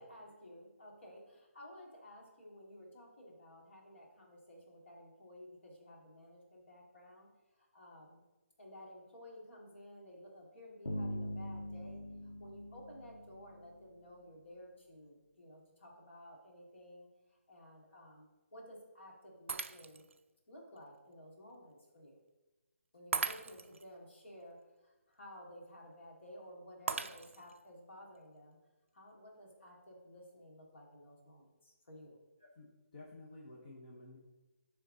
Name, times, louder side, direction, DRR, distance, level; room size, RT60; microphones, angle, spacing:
voice 1, 0.0-7.3 7.5-8.2 8.6-20.0 20.5-22.2 22.9-28.6 28.9-32.2, equal, 55° left, -2 dB, 2.3 m, -54 dB
sound 1, 10.9-13.9, left 1 dB, 80° left, 1.5 m, -42 dB
Shatter, 19.5-20.2 20.8-20.9 23.1-23.9 26.9-27.6, right 5 dB, 60° right, 0.4 m, -38 dB
voice 2, 32.6-34.2, left 2 dB, 35° left, -2 dB, 0.9 m, -53 dB
11.0 x 3.7 x 3.8 m, 1.1 s
hypercardioid pair, 175°, 8 cm